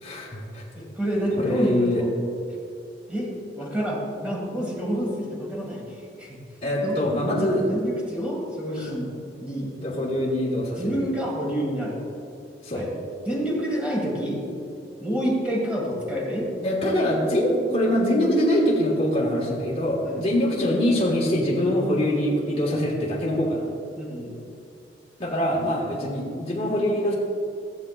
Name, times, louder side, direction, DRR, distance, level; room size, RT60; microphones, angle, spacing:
voice 1, 0.0-0.6 1.4-2.1 5.6-5.7 6.6-7.7 9.8-11.0 12.6-12.9 16.6-23.7 25.2-27.2, left 1 dB, 35° left, -6 dB, 1.6 m, -24 dB
voice 2, 0.7-2.1 3.1-5.8 6.2-6.4 6.8-7.0 7.4-9.1 9.4-9.7 10.8-12.0 12.7-12.9 13.3-14.4 15.0-16.5 20.0-20.2 24.0-24.3, equal, 5° right, -3 dB, 1.9 m, -28 dB
15.0 x 7.6 x 2.4 m, 2.5 s
head